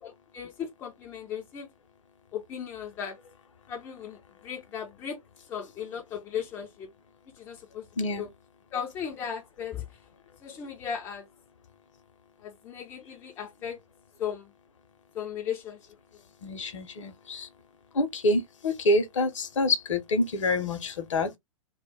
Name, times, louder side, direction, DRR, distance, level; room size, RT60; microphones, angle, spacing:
voice 1, 0.0-1.7 2.3-3.2 3.7-5.2 5.5-6.9 7.4-8.3 8.7-9.9 10.4-11.3 12.4-13.8 14.2-14.5 15.1-15.8 16.1-16.2, left 8 dB, 15° left, 0.3 m, -36 dB
voice 2, 16.4-17.5 17.9-21.4, left 2 dB, 60° left, 0.6 m, -27 dB
2.1 x 2.1 x 3.2 m
figure-of-eight pair, 115°, 18 cm